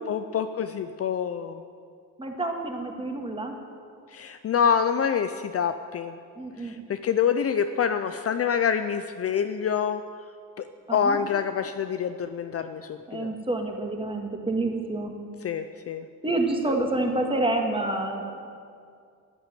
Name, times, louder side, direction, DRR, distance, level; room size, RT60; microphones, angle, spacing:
voice 1, 0.0-1.6 4.1-6.1 6.6-10.0 10.6-13.3 15.4-16.0, left 7 dB, 40° left, 9 dB, 0.6 m, -26 dB
voice 2, 2.2-3.5 6.4-6.8 10.9-11.2 13.1-15.1 16.2-18.5, right 2 dB, 15° right, 2 dB, 2.0 m, -28 dB
11.5 x 10.0 x 9.2 m, 2.3 s
cardioid pair, 115°, 35 cm